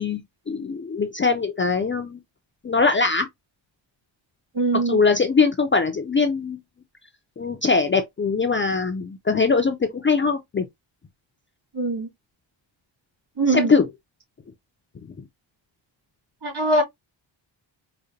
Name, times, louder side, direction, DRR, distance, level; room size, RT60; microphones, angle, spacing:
voice 1, 0.0-2.2 2.6-3.3 4.9-6.6 7.4-10.7 13.5-13.9, left 4 dB, 25° left, 0.4 m, -22 dB
voice 2, 4.5-5.0 11.7-12.1 13.4-13.7 16.4-16.8, right 2 dB, 55° right, 2.2 m, -22 dB
5.0 x 2.1 x 2.7 m
wide cardioid pair, 150°, 47 cm